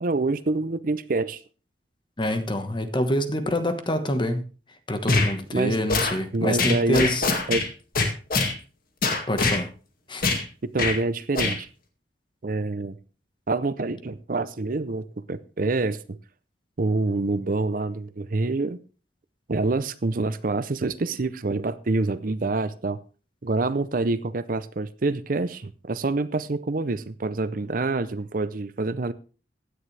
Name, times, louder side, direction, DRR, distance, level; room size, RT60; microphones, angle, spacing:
voice 1, 0.0-1.4 5.5-5.8 6.3-7.1 7.5-7.7 10.6-11.7 12.4-13.0 13.5-16.2 16.8-18.8 19.5-23.0 23.4-29.1, right 3 dB, 50° right, 0.6 m, -26 dB
voice 2, 2.2-4.4 4.9-7.3 9.3-9.7 10.1-10.3, left 1 dB, 25° left, 1.3 m, -26 dB
sound 1, 5.1-5.3 5.9-6.1 6.6-7.7 7.9-8.5 9.0-9.6 10.2-10.4 10.8-11.0 11.3-11.6, left 3 dB, 55° left, 2.1 m, -23 dB
16.0 x 10.0 x 3.3 m
head